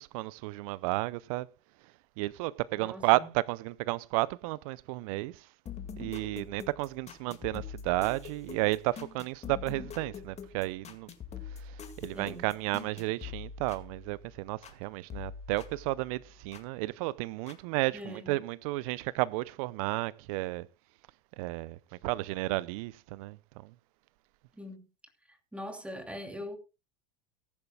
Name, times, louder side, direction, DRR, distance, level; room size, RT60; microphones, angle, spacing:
voice 1, 0.0-1.5 2.2-5.5 6.0-11.1 11.5-20.7 21.4-23.4 23.6-23.7, right 19 dB, 65° right, 0.6 m, -32 dB
voice 2, 2.8-3.3 12.1-12.5 17.9-18.4 24.5-24.9 25.3-26.6, left 1 dB, 5° right, 2.7 m, -42 dB
sound 1, 5.7-14.8 15.1-16.7 17.5-17.6, left 7 dB, 35° left, 2.1 m, -45 dB
18.5 x 10.5 x 2.3 m
hypercardioid pair, 80°, 20 cm